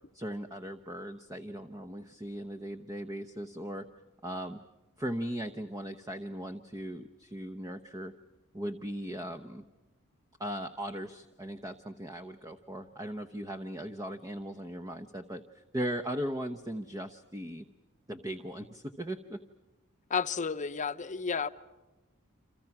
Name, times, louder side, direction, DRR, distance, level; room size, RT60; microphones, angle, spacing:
voice 1, 0.1-3.9 4.2-4.6 5.0-8.1 8.5-9.7 10.4-17.7 18.1-19.4, equal, 15° right, 0.9 m, -38 dB
voice 2, 20.1-21.5, left 5 dB, 35° left, 0.9 m, -31 dB
28.5 x 27.5 x 6.0 m
head